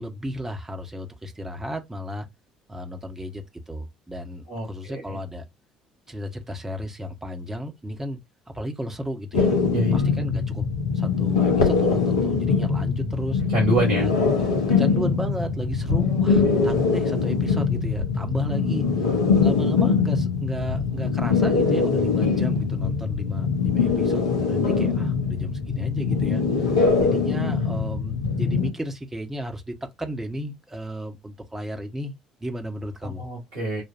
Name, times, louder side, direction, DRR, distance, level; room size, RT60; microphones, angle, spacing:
voice 1, 0.0-2.3 2.7-5.4 6.1-8.2 8.5-9.6 9.9-10.6 10.9-13.4 14.0-14.1 14.8-26.4 27.0-32.1 32.4-33.2, equal, 10° right, 1.1 m, -34 dB
voice 2, 4.5-5.0 9.7-10.1 13.5-14.0 33.0-33.8, right 2 dB, 80° right, 2.6 m, -26 dB
sound 1, 9.3-28.7, left 5 dB, 75° left, 0.8 m, -22 dB
5.9 x 2.5 x 2.5 m
figure-of-eight pair, 55°, 3 cm